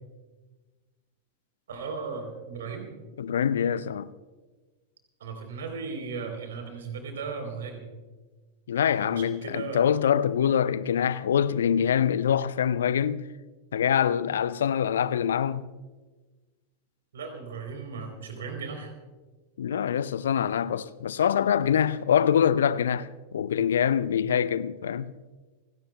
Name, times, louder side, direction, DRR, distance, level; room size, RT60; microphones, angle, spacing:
voice 1, 1.7-2.9 5.2-7.9 9.0-9.9 17.1-18.9, right 5 dB, 65° right, 3.5 m, -36 dB
voice 2, 3.2-4.1 8.7-13.2 13.7-15.6 19.6-25.1, left 8 dB, 65° left, 0.5 m, -24 dB
29.5 x 17.0 x 2.2 m
figure-of-eight pair, 90°, 0 cm